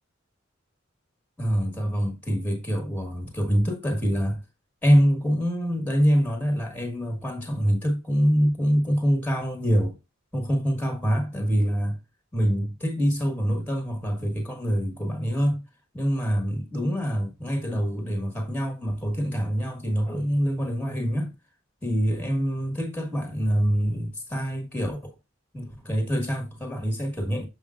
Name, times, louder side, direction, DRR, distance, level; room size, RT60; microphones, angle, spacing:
voice 1, 1.4-4.4 4.8-10.0 10.3-12.0 12.3-15.6 15.9-21.3 21.8-25.1 25.5-27.5, equal, 5° left, 1.5 m, -25 dB
7.3 x 5.2 x 2.4 m
head